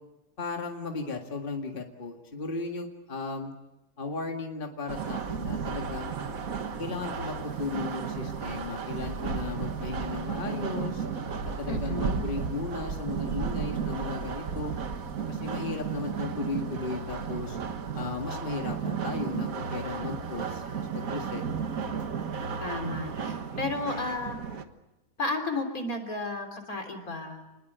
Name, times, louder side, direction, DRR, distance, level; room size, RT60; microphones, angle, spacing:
voice 1, 0.4-3.5 4.0-6.2 6.8-11.0 11.6-14.7 15.3-17.6 17.9-21.4, left 3 dB, 35° left, 2 dB, 2.2 m, -36 dB
sound 1, 4.9-24.6, right 6 dB, 70° right, 1.8 m, -33 dB
voice 2, 11.7-12.3 22.6-24.4 25.2-27.4, left 2 dB, 75° left, 5 dB, 4.0 m, -33 dB
29.5 x 20.5 x 8.1 m, 0.97 s
omnidirectional pair, 1.5 m